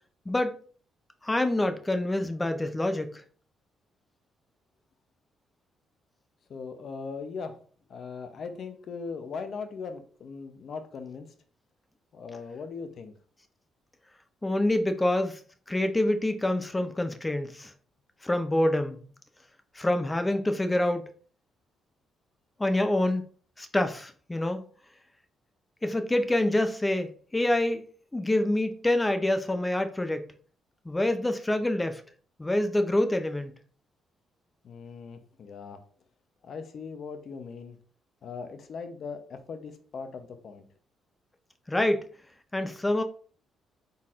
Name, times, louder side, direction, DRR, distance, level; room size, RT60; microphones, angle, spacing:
voice 1, 0.3-0.6 1.2-3.2 14.4-15.4 15.7-17.7 18.2-19.0 19.8-21.1 22.6-23.2 23.6-24.6 25.8-27.9 28.1-30.3 30.9-32.0 32.4-33.6 41.7-42.0 42.5-43.0, left 1 dB, 15° left, 0.6 m, -26 dB
voice 2, 6.5-7.6 7.9-11.3 12.1-13.1 34.6-35.8 36.4-37.8 38.2-40.6, left 5 dB, 60° left, 0.6 m, -39 dB
4.1 x 3.9 x 2.5 m
cardioid pair, 90°, 0 cm